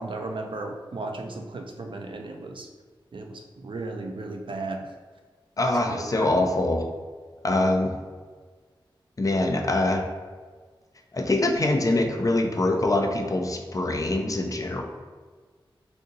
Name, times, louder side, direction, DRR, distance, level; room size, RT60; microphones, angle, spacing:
voice 1, 0.0-2.7 3.1-4.9 5.9-6.4, right 2 dB, 65° right, 3 dB, 0.4 m, -35 dB
voice 2, 5.6-6.9 7.4-7.9 9.2-10.1 11.1-14.8, left 2 dB, 40° left, 3 dB, 0.4 m, -24 dB
2.7 x 2.5 x 3.9 m, 1.5 s
wide cardioid pair, 60°, 9 cm